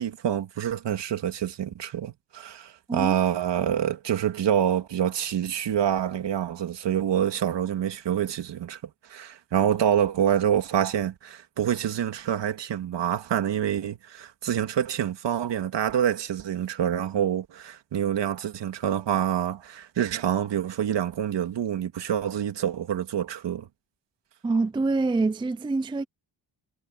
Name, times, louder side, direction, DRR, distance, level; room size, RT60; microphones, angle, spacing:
voice 1, 0.0-8.8 9.1-23.7, right 9 dB, 70° right, 2.5 m, -26 dB
voice 2, 24.4-26.0, right 3 dB, 10° right, 0.5 m, -25 dB
wide cardioid pair, 150°, 43 cm